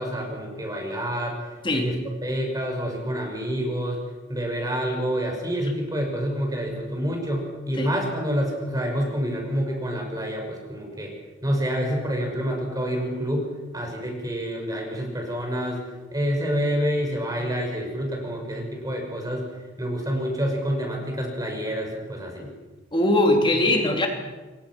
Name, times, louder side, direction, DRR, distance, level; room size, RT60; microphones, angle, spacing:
voice 1, 0.0-1.4 1.7-4.0 4.3-11.1 11.4-13.5 13.7-15.8 16.1-19.5 19.8-22.5, equal, 20° right, 2 dB, 5.6 m, -27 dB
voice 2, 1.6-2.0 7.8-7.9 22.9-24.1, left 1 dB, 25° left, 2 dB, 3.2 m, -21 dB
29.0 x 23.0 x 6.1 m, 1.2 s
head